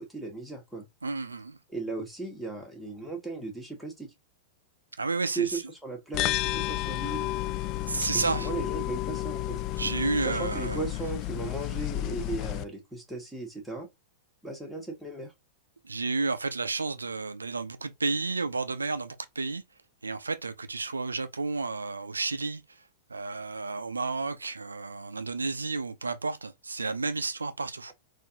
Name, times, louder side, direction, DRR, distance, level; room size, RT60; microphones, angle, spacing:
voice 1, 0.0-0.8 1.7-4.1 5.3-7.3 8.1-9.6 10.2-13.9 14.4-15.3, right 3 dB, ahead, 1.4 m, -36 dB
voice 2, 1.0-1.6 5.0-5.6 7.9-8.5 9.8-10.8 15.8-19.6 20.0-22.8 23.1-27.9, right 3 dB, 90° right, 0.4 m, -31 dB
sound 1, 6.1-12.6, left 15 dB, 40° left, 0.3 m, -31 dB
3.8 x 2.5 x 2.8 m
hypercardioid pair, 100°, 0 cm